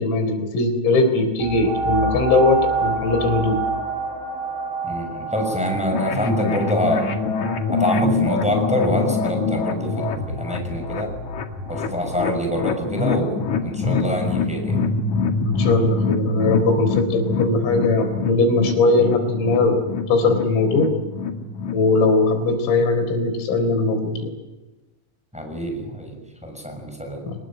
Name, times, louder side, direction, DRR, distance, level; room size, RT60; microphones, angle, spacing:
voice 1, 0.0-3.6 15.4-19.8 20.1-20.9 21.7-24.3 27.2-27.4, left 3 dB, 90° left, 7 dB, 6.5 m, -20 dB
sound 1, 1.4-10.7 11.3-11.4, right 3 dB, 85° right, 8.0 m, -28 dB
voice 2, 4.8-7.3 7.7-11.1 11.7-14.8 25.3-27.2, equal, ahead, 3 dB, 5.8 m, -25 dB
sound 2, 5.9-21.8, left 4 dB, 55° left, 2.2 m, -25 dB
25.5 x 20.0 x 9.0 m, 1.1 s
omnidirectional pair, 5.8 m